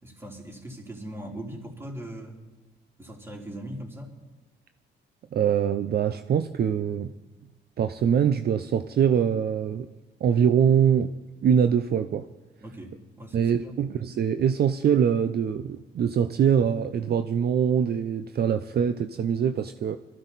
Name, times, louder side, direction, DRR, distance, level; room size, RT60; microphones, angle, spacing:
voice 1, 0.0-2.4 3.0-4.1 12.6-13.8, right 1 dB, 10° right, -1 dB, 3.6 m, -40 dB
voice 2, 5.3-7.1 7.8-9.9 10.2-11.1 11.4-12.3 13.3-20.0, right 8 dB, 55° right, 9 dB, 0.6 m, -23 dB
22.0 x 14.0 x 4.1 m, 1.2 s
cardioid pair, 90°, 20 cm